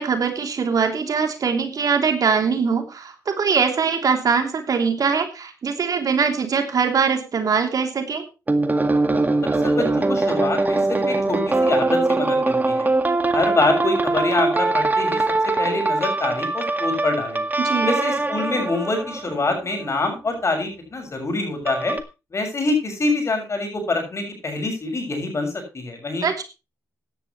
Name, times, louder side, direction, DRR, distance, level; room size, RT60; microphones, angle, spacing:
voice 1, 0.0-8.2 17.6-17.9 26.2-26.4, right 5 dB, 60° right, 5 dB, 3.1 m, -22 dB
sound 1, 8.5-19.9 21.7-22.0, right 2 dB, 25° right, 1.9 m, -22 dB
voice 2, 9.6-12.9 13.3-15.2 15.6-17.4 17.9-22.0 22.3-26.3, left 3 dB, 45° left, 4 dB, 7.1 m, -25 dB
15.5 x 11.0 x 3.2 m, 0.28 s
cardioid pair, 70°, 7 cm